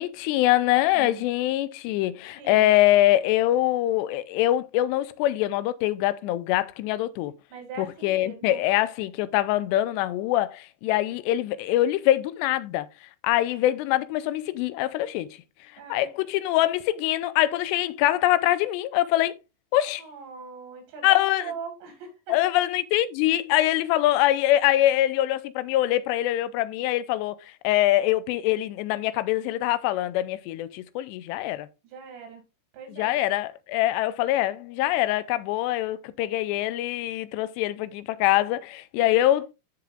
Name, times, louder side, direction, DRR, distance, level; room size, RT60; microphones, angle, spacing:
voice 1, 0.0-7.3 7.8-12.9 13.2-15.4 15.9-19.4 19.7-20.0 21.0-21.5 22.3-27.4 27.6-31.7 32.9-39.5, left 14 dB, 90° left, 2.8 m, -24 dB
voice 2, 0.7-1.3 2.4-2.7 7.5-8.6 15.8-16.1 20.0-22.5 31.8-32.4 32.7-33.1 39.0-39.1, right 6 dB, 90° right, 4.4 m, -41 dB
14.0 x 5.0 x 2.5 m
omnidirectional pair, 4.8 m